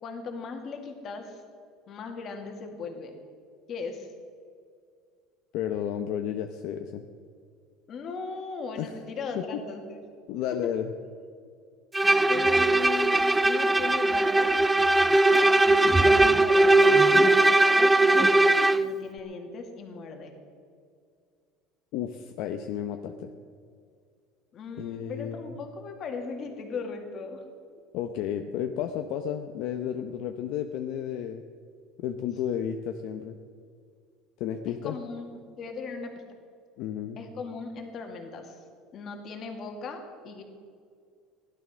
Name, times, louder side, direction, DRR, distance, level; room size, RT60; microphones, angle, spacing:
voice 1, 0.0-1.4 1.9-3.1 3.7-4.1 7.9-10.0 10.5-10.7 12.3-14.6 15.7-16.8 17.2-18.4 18.8-20.3 24.5-27.4 34.7-36.2 37.2-38.6 38.9-40.4, left 4 dB, 35° left, 4 dB, 2.0 m, -38 dB
voice 2, 5.5-7.0 8.8-8.9 9.3-9.4 10.3-10.9 16.0-16.2 21.9-23.3 24.8-25.6 27.9-31.4 32.0-33.4 34.4-35.0 36.8-37.2, left 9 dB, 55° left, 6 dB, 0.8 m, -32 dB
Bowed string instrument, 11.9-18.9, right 2 dB, 5° right, 0.3 m, -20 dB
16.0 x 11.5 x 6.2 m, 2.2 s
cardioid pair, 170°, 0 cm